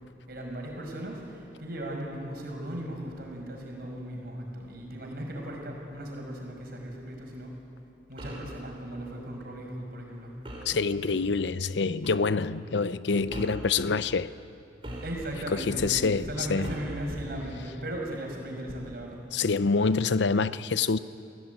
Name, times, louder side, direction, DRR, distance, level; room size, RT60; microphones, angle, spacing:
voice 1, 0.3-7.5 8.1-10.4 15.0-19.2, right 1 dB, 55° right, 5.7 m, -37 dB
sound 1, 8.2-8.6 10.4-10.8 12.0-12.3 13.3-13.7 14.8-15.5 16.6-17.1, equal, 30° right, 4.7 m, -39 dB
voice 2, 10.7-14.3 15.5-16.7 19.3-21.0, left 4 dB, 75° left, 0.7 m, -26 dB
28.0 x 17.0 x 9.3 m
head